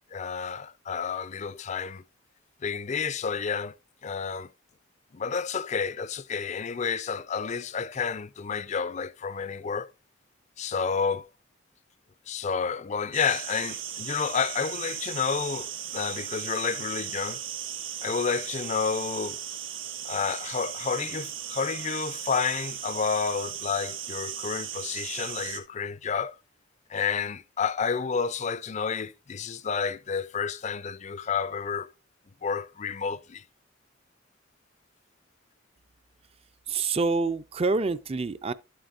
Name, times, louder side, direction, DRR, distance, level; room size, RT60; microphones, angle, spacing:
voice 1, 0.1-2.0 2.6-3.8 4.0-4.5 5.1-9.9 10.6-11.3 12.3-17.4 18.0-19.4 20.0-26.4 26.9-31.9 32.4-33.4, left 6 dB, 35° left, 0.5 m, -30 dB
sound 1, 13.1-25.6, right 10 dB, 90° right, 1.5 m, -37 dB
voice 2, 36.7-38.5, right 3 dB, 30° right, 0.4 m, -27 dB
11.5 x 7.7 x 2.5 m
head